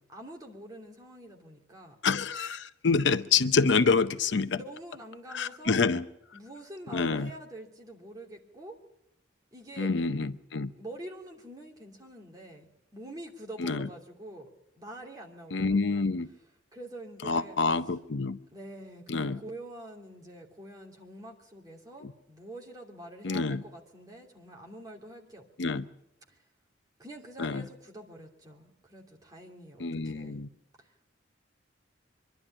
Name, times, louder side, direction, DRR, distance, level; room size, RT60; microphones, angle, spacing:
voice 1, 0.1-2.0 4.5-5.8 6.3-8.8 9.5-9.9 10.8-14.5 14.7-16.1 16.7-17.6 18.5-25.8 26.3-26.4 27.0-30.4 30.8-31.1, right 1 dB, 20° right, 2.8 m, -46 dB
voice 2, 2.0-4.6 5.3-6.0 6.9-7.3 9.8-10.7 13.6-13.9 15.5-16.3 17.2-18.4 19.1-19.4 22.0-22.1 23.2-23.6 25.6-25.8 27.4-27.7 29.8-30.5, left 4 dB, 65° left, 0.7 m, -27 dB
24.0 x 11.5 x 9.8 m
head